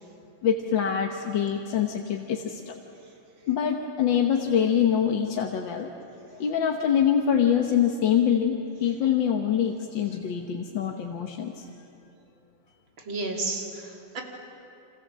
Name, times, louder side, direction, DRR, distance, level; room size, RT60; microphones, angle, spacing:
voice 1, 0.4-2.7 3.5-5.9 6.4-11.7, left 8 dB, 70° left, 2 dB, 1.9 m, -25 dB
voice 2, 13.1-14.2, right 3 dB, 80° right, 1 dB, 3.9 m, -32 dB
28.5 x 26.5 x 7.5 m, 2.8 s
omnidirectional pair, 2.1 m